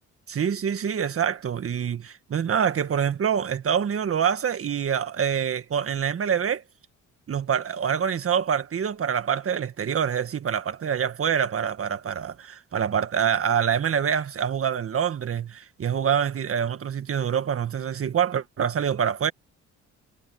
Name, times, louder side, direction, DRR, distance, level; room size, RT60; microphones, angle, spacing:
voice 1, 0.3-6.6 7.3-19.3, right 8 dB, 50° right, 1.7 m, -26 dB
cardioid pair, 90°, 30 cm